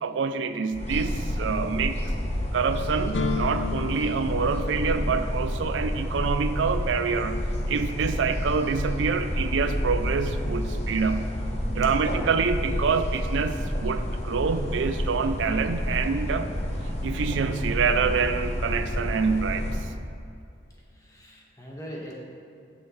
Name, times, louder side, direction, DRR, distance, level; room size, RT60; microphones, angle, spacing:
voice 1, 0.0-2.0 2.5-11.4 11.7-16.5 17.0-19.8, right 5 dB, 80° right, 9 dB, 0.4 m, -26 dB
sound 1, 0.7-19.9, equal, 35° left, 0.9 m, -29 dB
sound 2, 3.1-10.9, left 4 dB, 85° left, 0.6 m, -37 dB
voice 2, 20.9-22.1, equal, 20° left, -3 dB, 1.3 m, -41 dB
11.5 x 6.6 x 3.2 m, 2.4 s
head